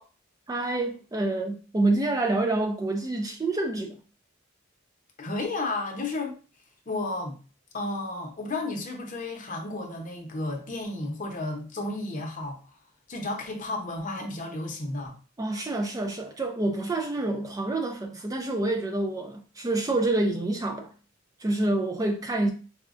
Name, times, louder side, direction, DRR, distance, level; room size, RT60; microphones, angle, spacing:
voice 1, 0.5-4.0 15.4-20.9 21.4-22.5, right 2 dB, 20° right, 0.3 m, -27 dB
voice 2, 5.2-6.4 6.9-7.4 7.7-12.6 13.1-15.2, left 2 dB, 40° left, 0.7 m, -32 dB
4.8 x 2.2 x 2.4 m
head